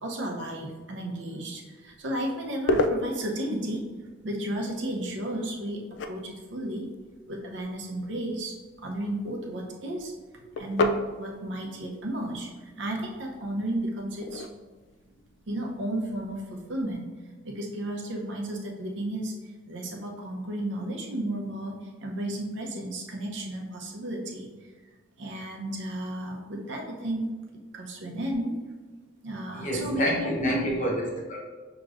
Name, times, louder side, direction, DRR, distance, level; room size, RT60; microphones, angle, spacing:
voice 1, 0.0-3.8 4.2-6.9 7.3-10.1 10.6-14.5 15.5-17.1 17.4-24.5 25.2-27.3 27.7-28.5 29.2-30.6, right 1 dB, 70° right, 0 dB, 0.7 m, -33 dB
sound 1, 1.8-16.9, left 2 dB, 70° left, 0.3 m, -35 dB
voice 2, 29.5-31.4, equal, 40° left, -2 dB, 0.9 m, -28 dB
6.0 x 3.0 x 2.5 m, 1.3 s
head